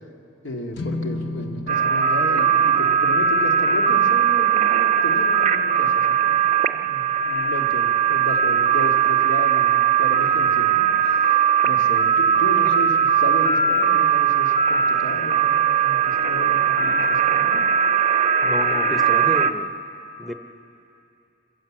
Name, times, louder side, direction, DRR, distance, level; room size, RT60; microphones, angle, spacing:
voice 1, 0.4-6.5 6.7-17.6, left 1 dB, 85° left, 2 dB, 2.2 m, -33 dB
sound 1, 0.7-7.2, left 2 dB, 65° left, 1.1 m, -37 dB
sound 2, 1.7-19.5, right 7 dB, 40° right, 0.5 m, -19 dB
voice 2, 18.4-19.7 20.2-20.3, equal, ahead, 5 dB, 0.8 m, -31 dB
26.0 x 16.0 x 7.5 m, 2.7 s
head